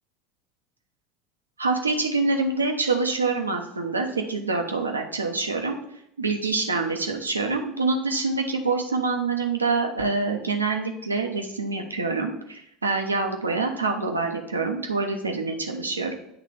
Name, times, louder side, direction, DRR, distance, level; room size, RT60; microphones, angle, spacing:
voice 1, 1.6-5.8 6.2-16.2, right 3 dB, 90° right, 4 dB, 0.7 m, -26 dB
8.1 x 3.3 x 4.8 m, 0.77 s
figure-of-eight pair, 70°, 0 cm